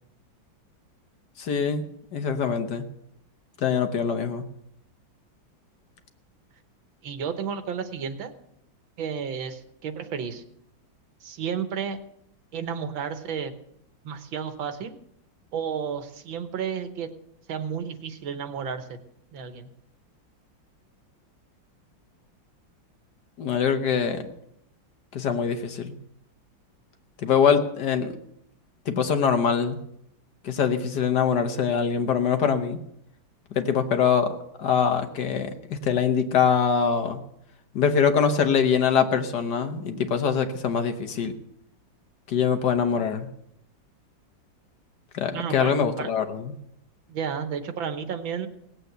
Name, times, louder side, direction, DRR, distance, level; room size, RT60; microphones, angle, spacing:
voice 1, 1.4-2.8 3.6-4.4 23.4-24.2 25.1-25.9 27.2-28.1 28.9-29.8 30.4-32.8 33.5-37.2 37.7-41.3 42.3-43.3 45.1-46.5, left 7 dB, 60° left, 7 dB, 1.6 m, -23 dB
voice 2, 7.0-8.3 9.0-10.4 11.2-12.0 12.5-13.5 14.0-15.0 15.5-17.1 17.5-19.0 19.3-19.7 45.3-46.1 47.1-48.5, right 7 dB, 80° right, 9 dB, 1.9 m, -32 dB
18.0 x 8.0 x 8.0 m, 0.76 s
omnidirectional pair, 2.1 m